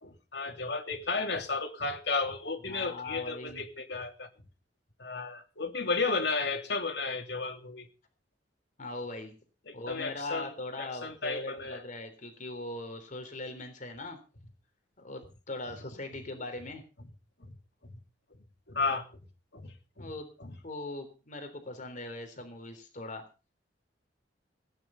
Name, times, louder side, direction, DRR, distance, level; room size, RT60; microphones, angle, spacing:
voice 1, 0.0-4.3 5.0-7.9 9.7-11.8 17.4-17.6 17.8-18.0 18.7-19.2 19.5-20.1 20.4-20.6, left 4 dB, 65° left, 5 dB, 3.0 m, -33 dB
voice 2, 2.7-3.6 8.8-9.3 9.7-14.2 15.0-16.8 20.0-20.3 20.6-23.2, left 2 dB, 45° left, 7 dB, 3.5 m, -40 dB
18.0 x 10.5 x 5.7 m, 0.35 s
head